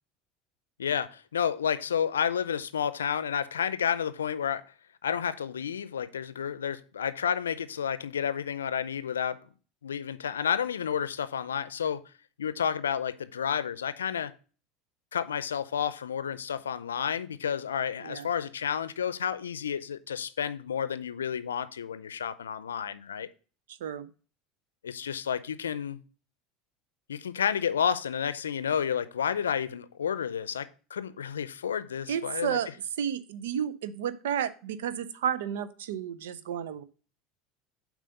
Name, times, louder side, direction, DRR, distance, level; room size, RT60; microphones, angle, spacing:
voice 1, 0.8-4.7 5.0-9.4 9.8-12.0 12.4-14.3 15.1-23.3 24.8-26.0 27.1-32.6, left 8 dB, 85° left, 0.5 m, -31 dB
voice 2, 23.7-24.1 32.1-32.7 33.0-36.8, right 8 dB, 75° right, 0.7 m, -32 dB
7.6 x 4.8 x 5.2 m
hypercardioid pair, 75°, 0 cm